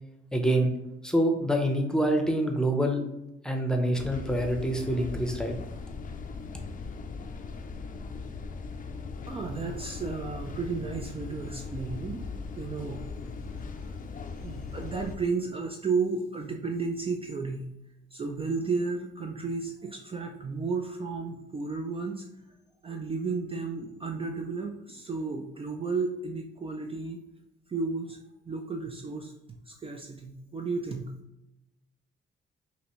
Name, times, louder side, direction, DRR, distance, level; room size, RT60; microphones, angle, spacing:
voice 1, 0.3-0.7 1.0-3.0 3.4-5.6, right 1 dB, 5° left, 3 dB, 0.7 m, -26 dB
sound 1, 4.0-15.2, left 4 dB, 45° left, 0.5 m, -39 dB
voice 2, 9.3-12.2 12.5-13.0 13.5-13.9 14.4-17.7 18.1-22.3 22.8-27.2 27.7-29.3 29.7-31.1, right 4 dB, 30° right, 3 dB, 0.4 m, -33 dB
5.5 x 2.6 x 3.1 m, 0.89 s
cardioid pair, 90°, 20 cm